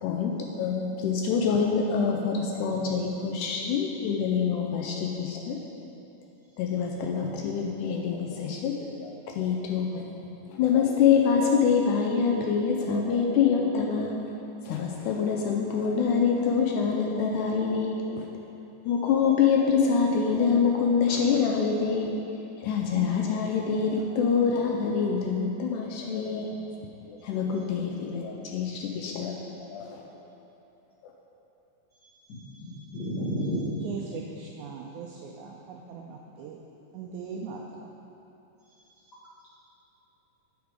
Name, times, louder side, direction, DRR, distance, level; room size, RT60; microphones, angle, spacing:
voice 1, 0.0-5.6 6.6-10.1 10.6-14.1 14.7-18.3 18.9-22.2 22.6-26.5 27.2-29.4 29.7-29.9, left 6 dB, 80° left, 0 dB, 1.9 m, -25 dB
voice 2, 32.3-33.8, equal, 65° left, -11 dB, 1.0 m, -32 dB
voice 3, 33.8-36.6 36.9-37.6, right 6 dB, 85° right, -1 dB, 1.7 m, -39 dB
8.0 x 5.1 x 4.8 m, 2.9 s
omnidirectional pair, 3.9 m